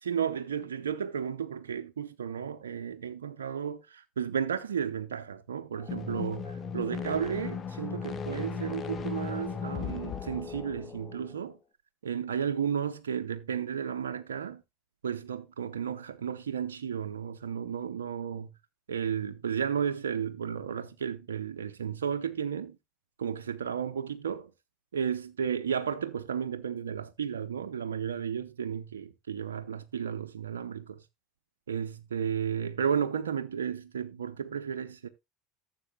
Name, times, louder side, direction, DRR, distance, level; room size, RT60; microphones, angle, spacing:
voice 1, 0.0-11.6 12.0-14.6 15.0-18.5 18.9-22.8 23.2-24.5 24.9-31.0 31.7-35.1, right 8 dB, 90° right, 0.7 m, -33 dB
sound 1, 5.8-11.4, left 6 dB, 35° left, 1.4 m, -37 dB
14.5 x 7.5 x 2.3 m
hypercardioid pair, 85°, 0 cm